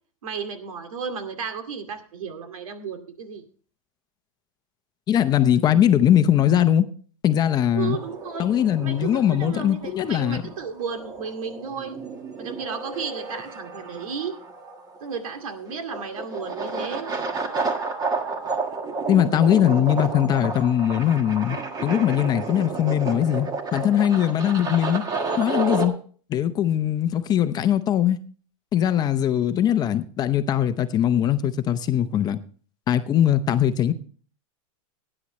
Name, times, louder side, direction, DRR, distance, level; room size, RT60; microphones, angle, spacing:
voice 1, 0.2-3.4 7.7-8.5 8.8-12.0 12.4-14.4 15.0-17.1 29.4-29.5, right 6 dB, 90° right, 2.3 m, -33 dB
voice 2, 5.1-6.9 7.2-8.0 8.4-10.4 19.1-25.0 25.4-25.9 26.3-28.2 28.7-32.4 32.9-33.9, left 10 dB, 25° left, 0.8 m, -21 dB
sound 1, 7.9-25.9, right 3 dB, 20° right, 1.6 m, -31 dB
18.0 x 9.9 x 3.2 m
supercardioid pair, 145°, 17 cm